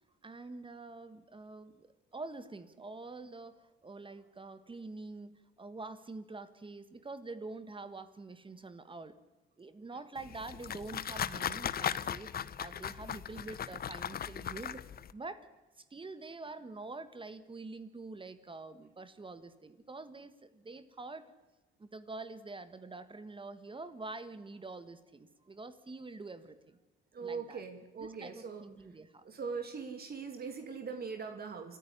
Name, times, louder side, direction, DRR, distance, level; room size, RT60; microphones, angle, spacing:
voice 1, 0.2-9.2 9.6-15.5 15.8-21.3 21.8-26.8 27.2-27.6 28.0-29.3, right 3 dB, 25° right, 11 dB, 1.5 m, -46 dB
sound 1, 10.2-15.1, left 9 dB, 50° left, 0.8 m, -38 dB
voice 2, 27.1-28.6 29.2-31.8, right 5 dB, 50° right, 5 dB, 2.5 m, -41 dB
27.5 x 10.0 x 10.0 m, 1.2 s
cardioid pair, 90°, 20 cm